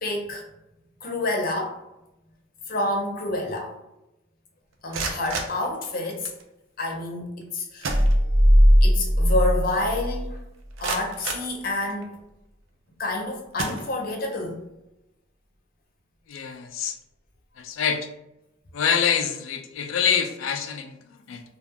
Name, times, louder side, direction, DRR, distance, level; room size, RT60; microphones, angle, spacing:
voice 1, 0.0-0.4 1.0-1.8 2.7-3.7 4.8-6.3 6.8-8.0 8.8-10.4 10.8-12.1 13.0-14.6, left 2 dB, 45° left, 1 dB, 0.6 m, -28 dB
sound 1, 4.7-6.4 7.4-7.5 7.8-8.7 9.1-9.2 9.7-9.8 10.4-12.2 12.9-13.1 13.5-14.4, right 4 dB, 85° right, 0.5 m, -34 dB
sound 2, 7.9-10.4 10.8-10.9, equal, 15° right, 0.4 m, -18 dB
voice 2, 16.3-17.0 17.6-18.1 18.7-21.4, left 7 dB, 85° left, 6 dB, 0.4 m, -26 dB
2.4 x 2.2 x 3.4 m, 0.91 s
head